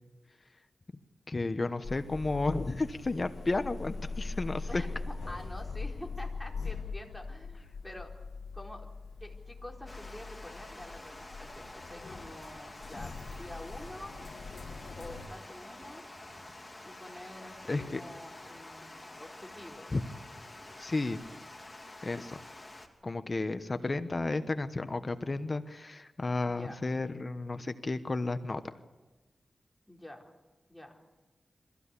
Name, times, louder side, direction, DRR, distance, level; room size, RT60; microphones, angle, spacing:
voice 1, 1.3-4.8 17.7-18.0 19.9-20.0 20.8-21.2 22.0-22.4 23.0-28.6, left 2 dB, 40° left, 10 dB, 1.1 m, -32 dB
sound 1, 1.8-15.3, left 4 dB, 80° left, 1.6 m, -41 dB
voice 2, 4.7-8.1 8.5-8.9 9.2-14.1 15.0-16.0 16.8-19.9 23.7-24.0 26.5-26.8 29.9-30.3 30.7-31.0, left 1 dB, 5° left, 0 dB, 4.2 m, -47 dB
sound 2, 9.3-20.8 21.1-21.2, right 2 dB, 35° right, 3.6 m, -60 dB
Water, 9.9-22.9, left 2 dB, 20° left, 3.0 m, -49 dB
24.0 x 15.5 x 8.4 m, 1.2 s
wide cardioid pair, 75°, 0 cm